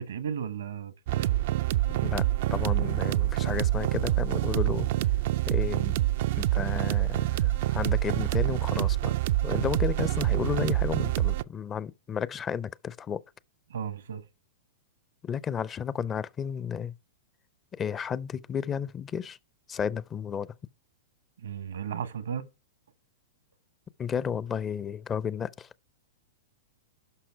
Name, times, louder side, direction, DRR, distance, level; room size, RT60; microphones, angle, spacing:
voice 1, 0.0-1.4 13.7-14.2 21.4-22.5, right 8 dB, 80° right, 1.2 m, -35 dB
sound 1, 1.1-11.4, right 15 dB, 60° right, 0.4 m, -26 dB
voice 2, 2.0-4.9 5.5-6.0 6.4-9.1 9.4-13.2 15.2-16.9 17.7-19.4 19.7-20.5 24.0-25.7, left 8 dB, 25° left, 0.5 m, -32 dB
11.5 x 5.9 x 4.6 m
hypercardioid pair, 115°, 0 cm